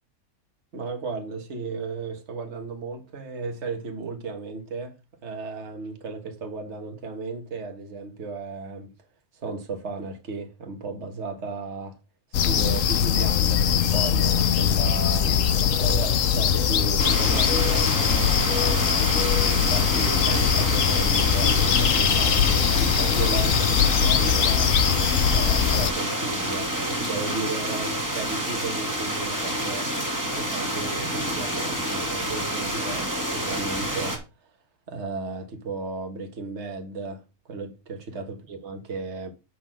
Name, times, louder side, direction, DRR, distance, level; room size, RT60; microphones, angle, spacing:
voice 1, 0.7-5.0 5.2-8.9 9.3-12.0 12.4-17.9 18.5-24.7 25.3-29.9 30.3-34.2 34.9-37.2 37.5-39.3, right 4 dB, 50° right, 1.7 m, -35 dB
sound 1, 12.3-25.9, left 8 dB, 65° left, 1.1 m, -21 dB
sound 2, 17.0-34.2, right 1 dB, 10° right, 2.0 m, -28 dB
8.1 x 4.0 x 6.1 m
omnidirectional pair, 1.5 m